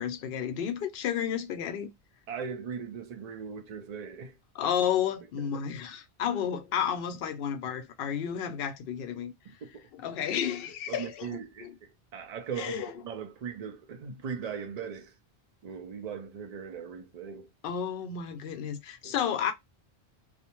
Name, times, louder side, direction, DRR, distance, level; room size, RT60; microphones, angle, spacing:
voice 1, 0.0-1.9 4.5-9.3 10.0-11.4 12.6-12.9 17.6-19.5, left 9 dB, 65° left, 0.7 m, -31 dB
voice 2, 2.3-4.4 5.4-5.7 9.4-9.9 10.9-15.2 15.6-17.5 19.0-19.2, right 7 dB, 50° right, 0.5 m, -39 dB
2.4 x 2.1 x 2.9 m
omnidirectional pair, 1.1 m